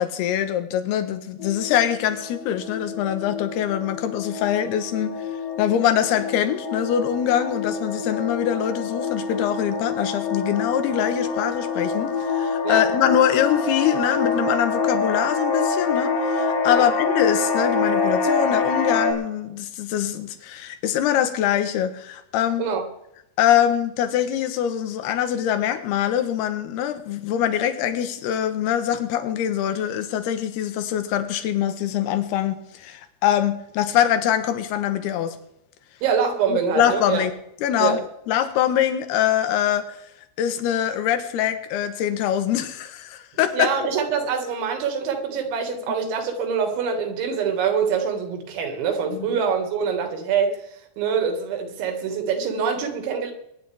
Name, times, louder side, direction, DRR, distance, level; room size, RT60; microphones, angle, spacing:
voice 1, 0.0-5.2 5.6-22.6 23.4-35.4 36.5-37.3 37.6-38.0 38.3-40.0 40.4-43.7 49.2-49.3, left 10 dB, 70° left, 9 dB, 2.9 m, -23 dB
sound 1, 1.4-19.1, left 4 dB, 45° left, 2.4 m, -26 dB
voice 2, 36.0-37.2 37.8-38.0 43.5-50.6 51.0-53.3, right 6 dB, 80° right, 5 dB, 4.4 m, -24 dB
22.5 x 11.0 x 3.5 m, 0.82 s
omnidirectional pair, 5.2 m